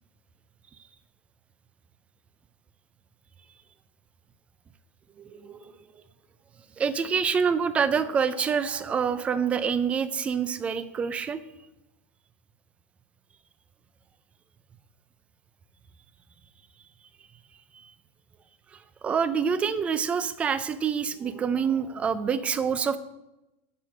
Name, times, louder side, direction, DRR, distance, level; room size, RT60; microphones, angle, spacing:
voice 1, 5.2-5.7 6.8-11.4 17.8-17.9 19.0-23.0, right 6 dB, 15° right, 14 dB, 0.5 m, -26 dB
10.0 x 4.7 x 6.4 m, 0.95 s
supercardioid pair, 160°, 8 cm